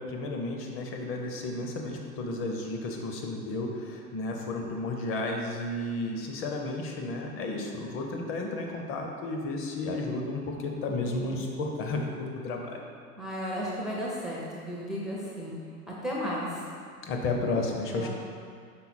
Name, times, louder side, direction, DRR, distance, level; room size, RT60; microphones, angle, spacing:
voice 1, 0.0-12.8 17.0-18.1, left 2 dB, 25° left, 1 dB, 0.8 m, -32 dB
voice 2, 13.2-15.6 15.9-16.7 17.9-18.1, equal, ahead, -5 dB, 0.5 m, -34 dB
5.7 x 4.1 x 4.2 m, 2.2 s
hypercardioid pair, 105°, 47 cm